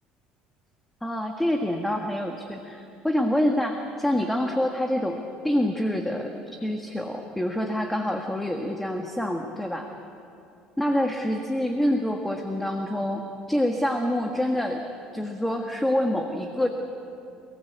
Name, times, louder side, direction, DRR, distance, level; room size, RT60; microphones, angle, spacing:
voice 1, 1.0-9.9 10.8-14.8 15.1-16.7, left 1 dB, 5° left, 3 dB, 1.6 m, -26 dB
28.0 x 19.0 x 8.1 m, 2.7 s
cardioid pair, 120°, 3 cm